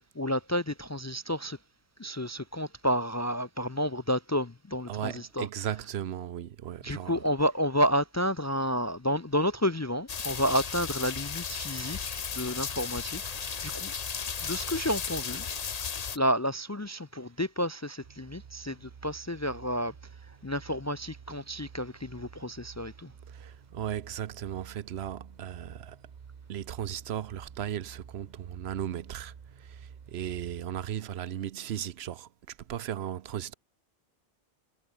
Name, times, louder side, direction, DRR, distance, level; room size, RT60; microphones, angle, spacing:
voice 1, 0.2-1.6 2.0-5.5 6.8-13.9 14.4-15.4 16.1-19.9 20.3-23.1, equal, 25° left, 0.4 m, -30 dB
voice 2, 4.9-7.2 23.3-26.0 26.5-33.5, right 10 dB, 90° right, 1.0 m, -36 dB
sound 1, 10.1-16.2, left 6 dB, 40° left, 0.9 m, -35 dB
sound 2, 18.0-30.9, right 6 dB, 50° right, 0.9 m, -50 dB
omnidirectional pair, 1.0 m